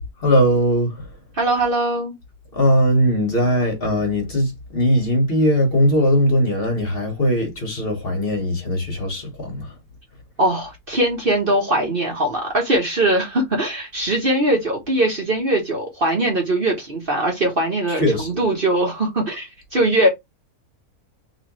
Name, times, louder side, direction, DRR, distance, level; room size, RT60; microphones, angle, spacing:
voice 1, 0.2-1.1 2.5-9.7 17.9-18.3, equal, 40° left, 1.4 m, -19 dB
voice 2, 1.3-2.1 10.4-20.1, right 1 dB, 40° right, 1.1 m, -21 dB
3.5 x 3.1 x 3.0 m
omnidirectional pair, 1.6 m